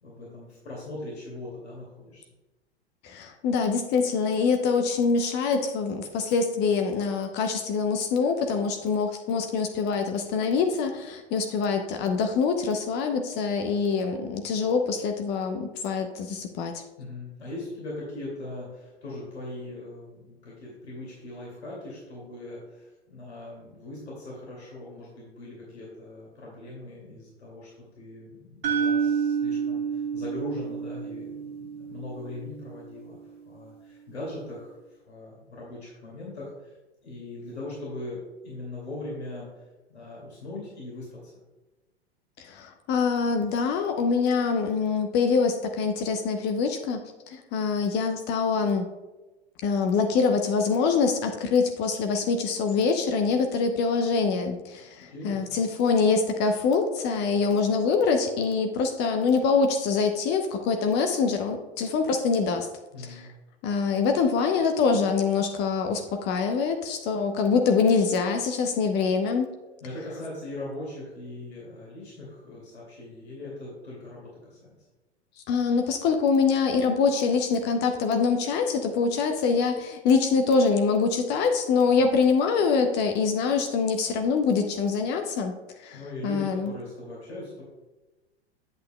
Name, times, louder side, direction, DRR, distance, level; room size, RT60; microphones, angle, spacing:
voice 1, 0.0-2.2 17.0-33.2 33.4-36.7 37.0-39.6 39.9-41.3 55.1-55.6 62.9-63.3 69.8-74.7 85.9-87.6, left 2 dB, 75° left, -5 dB, 2.4 m, -40 dB
voice 2, 3.0-16.8 42.4-47.0 47.3-48.9 49.6-62.7 63.0-63.3 63.6-69.5 75.5-85.5 85.8-86.7, left 5 dB, 30° left, 5 dB, 0.6 m, -24 dB
sound 1, 28.6-32.7, right 6 dB, 60° right, 1.5 m, -29 dB
8.4 x 8.1 x 2.2 m, 1.1 s
figure-of-eight pair, 95°, 33 cm